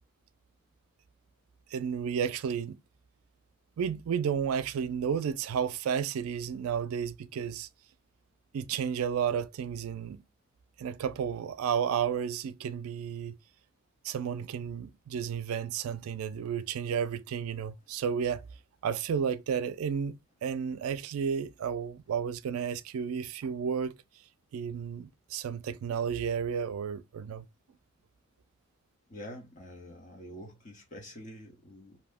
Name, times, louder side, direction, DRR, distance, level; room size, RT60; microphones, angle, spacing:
voice 1, 1.7-2.8 3.8-7.7 8.5-10.2 10.8-13.4 14.0-18.4 18.8-23.9 24.5-27.4, right 7 dB, 90° right, 0.3 m, -32 dB
voice 2, 29.1-32.0, equal, 35° left, 0.8 m, -46 dB
2.8 x 2.0 x 3.4 m
head